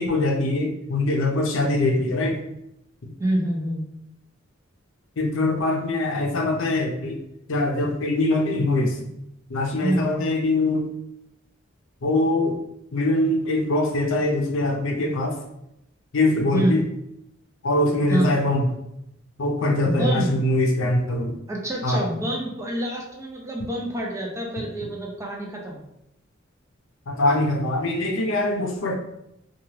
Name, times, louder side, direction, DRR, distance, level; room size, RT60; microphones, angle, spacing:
voice 1, 0.0-2.4 5.2-7.2 7.5-8.9 9.5-10.8 12.0-12.6 12.9-15.3 16.1-16.8 17.6-18.7 19.4-21.3 21.8-22.0 27.1-28.9, left 2 dB, 70° left, 1 dB, 0.5 m, -22 dB
voice 2, 3.2-3.8 9.8-10.2 16.5-16.8 18.1-18.4 19.8-20.3 21.5-25.8, right 1 dB, 15° right, -1 dB, 0.5 m, -26 dB
3.1 x 2.3 x 2.8 m, 0.81 s
head